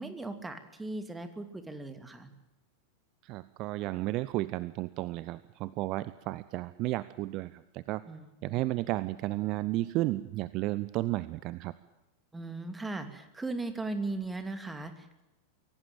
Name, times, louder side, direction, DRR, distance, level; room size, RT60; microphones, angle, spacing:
voice 1, 0.0-2.3 8.1-8.6 12.3-15.2, right 2 dB, 10° right, 9 dB, 2.7 m, -38 dB
voice 2, 3.2-8.0 8.4-11.7, right 18 dB, 40° right, 17 dB, 0.7 m, -33 dB
24.0 x 17.5 x 9.0 m, 0.95 s
figure-of-eight pair, 90°, 0 cm